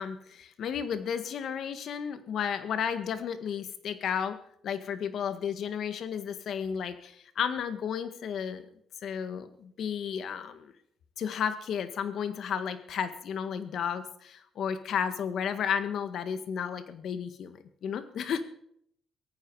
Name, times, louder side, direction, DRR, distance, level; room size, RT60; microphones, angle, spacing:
voice 1, 0.0-4.4 4.6-8.6 9.0-10.7 11.2-18.4, left 7 dB, 70° left, 10 dB, 1.7 m, -33 dB
17.5 x 15.0 x 4.8 m, 0.69 s
cardioid pair, 90°, 0 cm